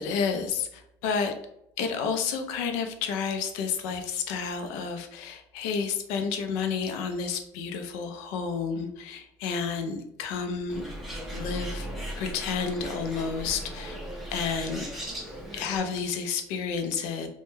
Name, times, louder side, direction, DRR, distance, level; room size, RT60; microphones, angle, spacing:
voice 1, 0.0-1.3 1.8-10.8 11.3-11.9 12.2-14.0 14.3-14.8 15.5-17.3, left 6 dB, 85° left, 6 dB, 0.4 m, -30 dB
Bird, 10.7-15.8, right 1 dB, ahead, 0.5 m, -37 dB
2.2 x 2.1 x 3.0 m, 0.79 s
cardioid pair, 175°, 9 cm